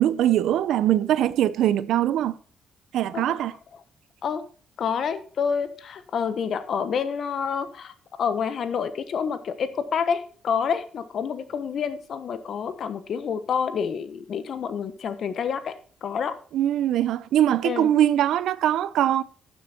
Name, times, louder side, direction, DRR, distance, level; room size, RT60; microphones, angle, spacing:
voice 1, 0.0-2.3 2.9-3.5 16.5-19.2, right 11 dB, 80° right, 0.6 m, -22 dB
voice 2, 4.8-7.9 8.2-16.4 17.6-17.9, left 6 dB, 60° left, 1.1 m, -28 dB
12.0 x 7.1 x 4.3 m
cardioid pair, 90°, 0 cm